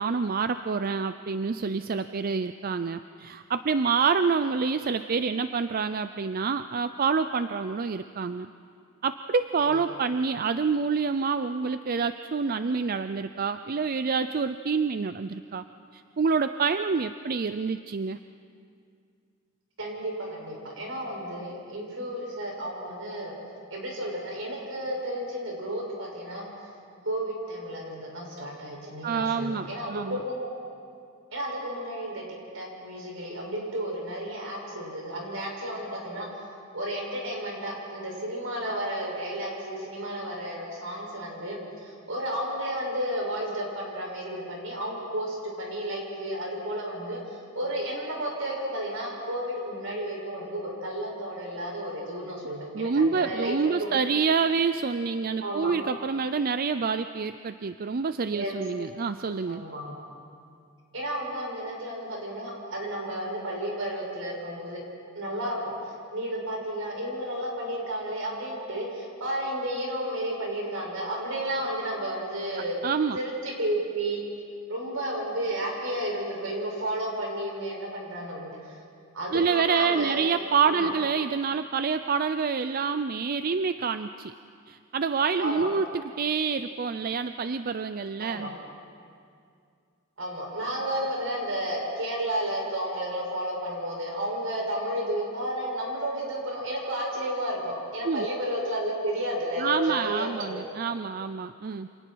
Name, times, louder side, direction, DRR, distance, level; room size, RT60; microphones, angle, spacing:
voice 1, 0.0-8.5 9.0-15.6 15.9-18.2 29.0-30.2 52.7-59.6 72.8-73.2 79.3-84.3 84.7-88.5 98.0-98.3 99.6-101.9, right 5 dB, 45° right, 11 dB, 0.5 m, -27 dB
voice 2, 19.8-23.3 23.7-26.5 27.0-30.5 31.3-32.2 32.5-36.3 36.7-47.2 47.5-54.0 55.4-55.7 58.3-58.5 59.5-59.9 60.9-64.8 65.1-65.7 66.1-72.8 73.1-74.2 74.7-78.8 79.1-80.2 80.6-80.9 85.4-85.7 88.2-88.5 90.2-100.7, right 1 dB, 75° right, -2 dB, 6.8 m, -32 dB
29.0 x 27.0 x 4.7 m, 2.3 s
head